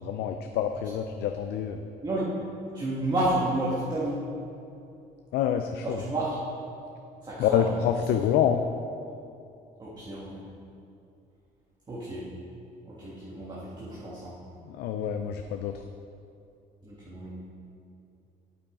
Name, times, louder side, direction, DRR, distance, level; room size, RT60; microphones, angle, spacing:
voice 1, 0.0-1.8 5.3-6.0 7.4-8.6 14.6-15.7, left 9 dB, 75° left, 6 dB, 0.5 m, -27 dB
voice 2, 2.0-4.3 5.8-6.4 7.2-8.1 9.8-10.4 11.9-12.3 12.8-14.4 16.8-17.3, right 1 dB, 25° right, -7 dB, 1.6 m, -31 dB
8.6 x 8.4 x 3.7 m, 2.6 s
cardioid pair, 110°, 17 cm